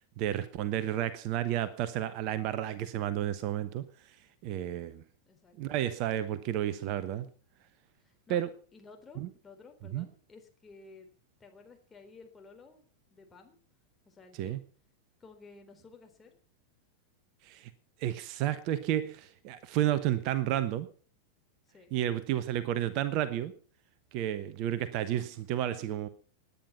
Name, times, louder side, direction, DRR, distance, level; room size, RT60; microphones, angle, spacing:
voice 1, 0.2-3.8 4.4-5.0 5.6-7.3 8.3-8.5 9.2-9.3 9.9-10.1 14.4-14.6 17.4-17.7 18.0-20.9 21.9-23.5 24.1-26.1, right 12 dB, 40° right, 14 dB, 1.1 m, -31 dB
voice 2, 5.3-5.8 8.0-8.4 8.7-11.1 11.4-13.6 14.0-14.6 15.2-16.4 21.7-21.9, left 4 dB, 15° left, 4 dB, 3.8 m, -54 dB
19.0 x 9.7 x 5.8 m, 0.42 s
figure-of-eight pair, 90°, 0 cm